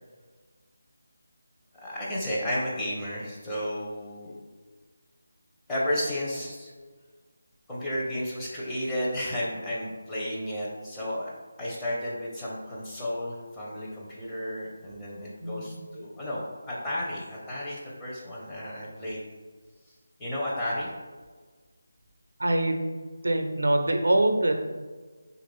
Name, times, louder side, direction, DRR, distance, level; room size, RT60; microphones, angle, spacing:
voice 1, 1.8-4.4 5.7-6.7 7.7-11.3 11.6-19.2 20.2-20.9, left 1 dB, 10° left, -7 dB, 0.6 m, -32 dB
voice 2, 15.4-15.8 22.4-22.9 23.2-24.5, right 1 dB, 80° right, 5 dB, 0.4 m, -24 dB
2.9 x 2.4 x 3.6 m, 1.4 s
figure-of-eight pair, 165°, 0 cm